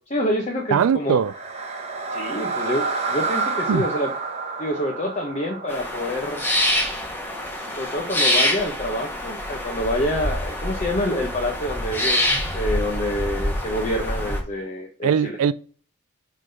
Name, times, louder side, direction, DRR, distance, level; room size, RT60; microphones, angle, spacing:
voice 1, 0.1-1.2 2.1-4.1 4.6-6.4 7.7-15.4, left 1 dB, 30° left, 0.9 m, -27 dB
voice 2, 0.7-1.3 3.7-3.8 15.0-15.5, right 7 dB, 70° right, 0.3 m, -20 dB
sound 1, 1.1-7.2, right 3 dB, 30° right, 0.9 m, -29 dB
sound 2, 5.7-14.4, left 1 dB, 10° left, 1.2 m, -25 dB
5.0 x 3.9 x 5.3 m
head